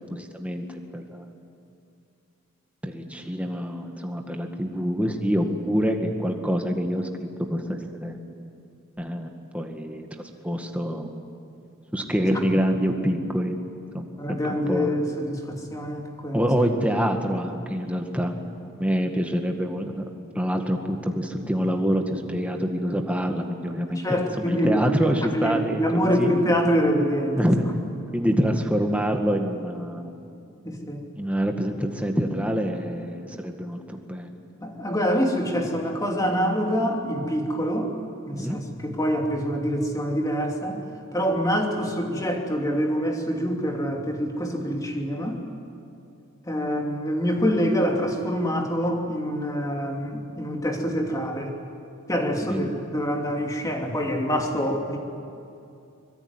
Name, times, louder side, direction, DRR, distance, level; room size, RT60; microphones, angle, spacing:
voice 1, 0.1-1.3 2.8-7.1 7.5-8.2 9.0-10.1 10.4-11.1 11.9-13.6 13.9-14.9 16.3-18.3 18.7-20.0 20.4-26.3 27.4-27.7 28.1-30.2 31.2-34.3 38.3-38.6 52.4-52.7, equal, 5° right, 3 dB, 1.9 m, -26 dB
voice 2, 14.2-16.5 23.9-27.4 30.6-31.0 34.6-37.9 38.3-40.8 41.1-45.4 46.5-51.5 52.1-55.0, equal, 15° left, 1 dB, 2.8 m, -25 dB
24.5 x 22.0 x 9.8 m, 2.6 s
head